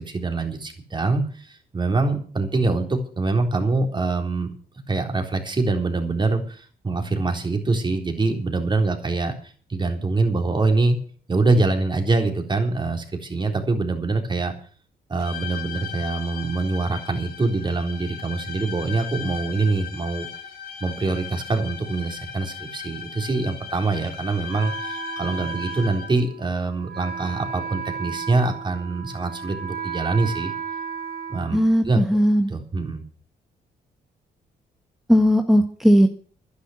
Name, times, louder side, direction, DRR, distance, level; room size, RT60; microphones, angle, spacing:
voice 1, 0.0-4.5 4.9-11.0 11.3-14.5 15.1-20.3 20.8-30.5 31.3-31.6 31.8-32.0 32.5-33.0, right 3 dB, 30° right, 4 dB, 3.9 m, -24 dB
sound 1, 15.2-26.3, left 8 dB, 65° left, 5.3 m, -37 dB
Wind instrument woodwind instrument, 24.5-32.2, right 5 dB, 75° right, 3.9 m, -34 dB
voice 2, 31.5-32.5 35.1-36.1, equal, ahead, 4 dB, 1.6 m, -17 dB
11.5 x 10.5 x 7.9 m, 0.43 s
cardioid pair, 85°, 17 cm